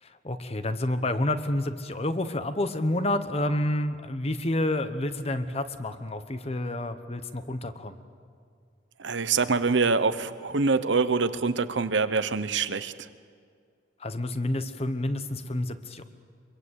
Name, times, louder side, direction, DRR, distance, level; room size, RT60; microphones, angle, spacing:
voice 1, 0.0-8.0 14.0-16.0, left 1 dB, 35° left, 10 dB, 1.2 m, -29 dB
voice 2, 9.0-12.9, right 4 dB, 75° right, 13 dB, 0.9 m, -25 dB
24.0 x 23.0 x 8.3 m, 2.2 s
head